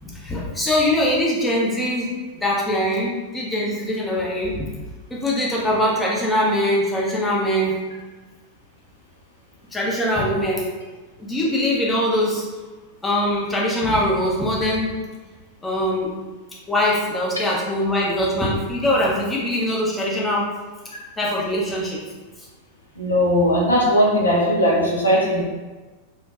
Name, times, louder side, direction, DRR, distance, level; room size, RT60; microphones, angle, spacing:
voice 1, 0.0-2.1 2.4-4.7 5.1-7.8 9.7-10.7 11.2-12.5 13.0-15.0 15.6-16.1 16.7-20.5 21.2-22.0, left 1 dB, 10° left, -4 dB, 0.7 m, -22 dB
voice 2, 23.0-25.4, equal, 75° left, -4 dB, 0.8 m, -18 dB
3.6 x 2.6 x 2.4 m, 1.3 s
figure-of-eight pair, 90°, 0 cm